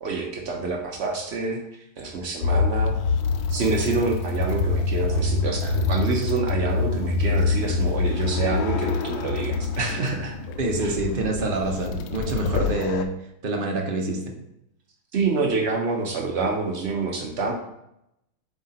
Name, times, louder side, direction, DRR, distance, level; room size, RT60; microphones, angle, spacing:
voice 1, 0.0-2.9 3.5-10.4 10.8-10.9 15.1-17.5, right 4 dB, 85° right, 1 dB, 0.5 m, -27 dB
sound 1, 2.4-13.0, left 4 dB, 80° left, 1.4 m, -25 dB
voice 2, 10.6-13.1 13.4-14.2, right 2 dB, 45° right, 1 dB, 0.7 m, -26 dB
7.5 x 3.6 x 4.2 m, 0.81 s
omnidirectional pair, 2.2 m